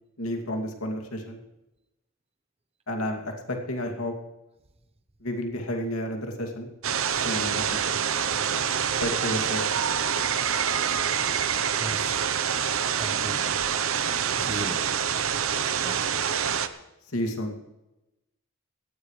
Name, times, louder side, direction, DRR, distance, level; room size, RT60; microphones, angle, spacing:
voice 1, 0.2-1.4 2.9-4.1 5.2-6.7 7.2-7.8 9.0-9.6 17.1-17.5, left 1 dB, 75° left, 3 dB, 2.6 m, -31 dB
sound 1, 6.8-16.7, right 8 dB, 65° right, 0.8 m, -26 dB
voice 2, 11.8-12.2 12.9-13.4 14.4-15.0 15.7-16.0, right 2 dB, 25° right, 8 dB, 0.9 m, -36 dB
18.0 x 16.0 x 3.3 m, 0.96 s
head